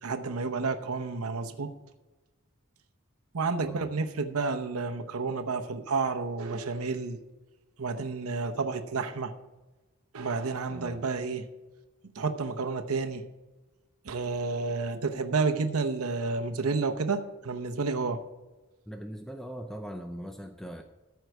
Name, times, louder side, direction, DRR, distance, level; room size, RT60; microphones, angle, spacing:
voice 1, 0.0-1.7 3.3-7.2 7.8-9.3 10.1-11.5 12.1-13.2 14.0-18.2, right 4 dB, 90° right, 7 dB, 0.8 m, -30 dB
voice 2, 3.6-3.9 10.7-11.1 18.9-20.8, equal, ahead, 5 dB, 0.5 m, -40 dB
14.0 x 4.7 x 8.0 m, 1.1 s
head